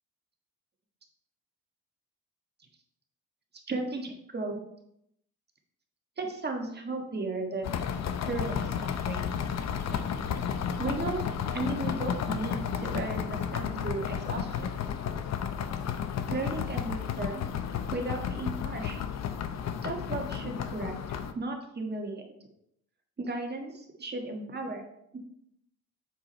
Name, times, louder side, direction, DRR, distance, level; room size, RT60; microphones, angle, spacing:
voice 1, 3.7-4.6 6.2-7.9 8.2-9.3 9.9-10.0 10.8-11.2 11.5-14.7 16.3-17.4 17.9-19.0 19.8-22.2 23.2-24.9 25.1-25.2, right 2 dB, 35° right, 2 dB, 1.6 m, -35 dB
sound 1, 7.6-21.3, left 8 dB, 60° left, 0.7 m, -32 dB
7.4 x 4.7 x 4.2 m, 0.76 s
cardioid pair, 90°, 30 cm